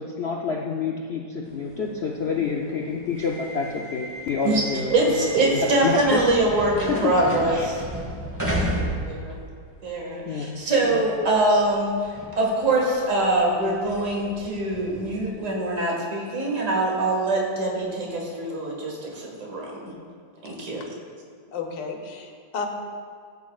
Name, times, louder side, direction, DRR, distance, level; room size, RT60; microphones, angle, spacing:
voice 1, 0.0-4.9 5.8-6.2 6.9-7.1 7.5-7.7 10.3-10.6, left 5 dB, 65° left, -1 dB, 0.6 m, -28 dB
sound 1, 1.4-9.9 10.3-15.3, equal, 10° right, 1.1 m, -34 dB
voice 2, 4.4-7.8 9.1-9.3 9.8-19.9 20.4-20.8, right 2 dB, 45° right, -2 dB, 2.0 m, -23 dB
voice 3, 21.5-22.7, left 5 dB, 90° left, 2 dB, 1.6 m, -32 dB
14.5 x 8.3 x 2.3 m, 2.1 s
omnidirectional pair, 1.9 m